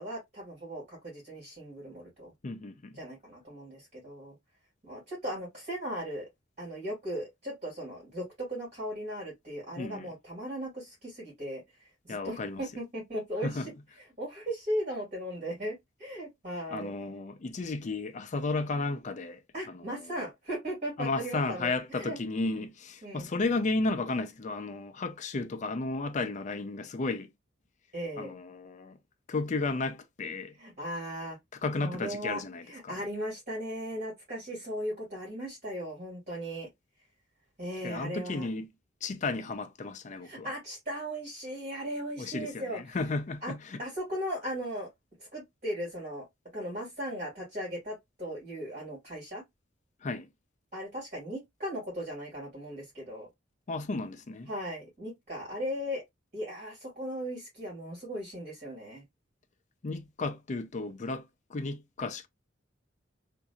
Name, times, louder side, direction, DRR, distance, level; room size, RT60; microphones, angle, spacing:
voice 1, 0.0-2.3 3.0-4.3 4.8-6.3 6.6-11.6 12.0-13.6 14.2-16.9 19.5-22.2 23.0-23.3 27.9-28.3 30.6-31.4 31.8-32.4 32.6-36.7 37.6-38.5 40.2-42.8 43.4-43.5 43.8-44.9 45.3-46.2 46.5-49.4 50.7-53.3 54.5-56.0 56.3-59.0, equal, 40° right, 2.5 m, -37 dB
voice 2, 2.4-3.0 9.8-10.1 12.1-12.6 13.4-13.7 16.7-19.4 19.7-20.1 21.0-27.3 28.2-29.0 29.3-30.5 31.5-33.0 37.8-38.7 39.0-40.5 42.2-43.8 50.0-50.3 53.7-54.5 59.8-62.3, left 3 dB, 40° left, 0.5 m, -33 dB
3.8 x 2.6 x 2.3 m
head